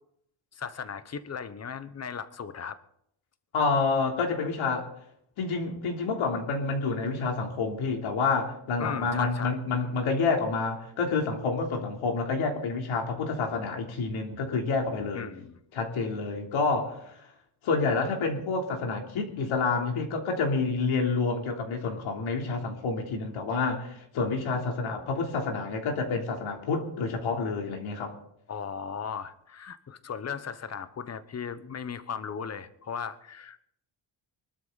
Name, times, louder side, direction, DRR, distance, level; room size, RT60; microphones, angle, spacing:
voice 1, 0.5-2.8 8.8-9.6 15.1-15.6 28.5-33.6, left 7 dB, 30° left, 13 dB, 1.0 m, -37 dB
voice 2, 3.5-4.9 5.4-15.3 15.7-17.2 17.6-28.2, left 4 dB, 75° left, 2 dB, 3.5 m, -28 dB
24.0 x 12.5 x 4.1 m, 0.73 s
cardioid pair, 145°, 48 cm